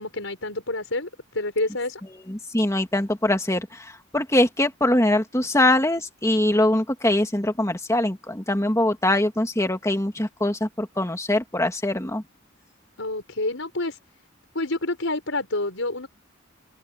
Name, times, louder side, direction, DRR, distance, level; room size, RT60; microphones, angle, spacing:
voice 1, 0.0-2.0 13.0-14.0 14.5-16.1, left 2 dB, 70° left, 5.7 m, -28 dB
voice 2, 2.3-12.2, left 1 dB, 15° left, 2.1 m, -23 dB
open air
head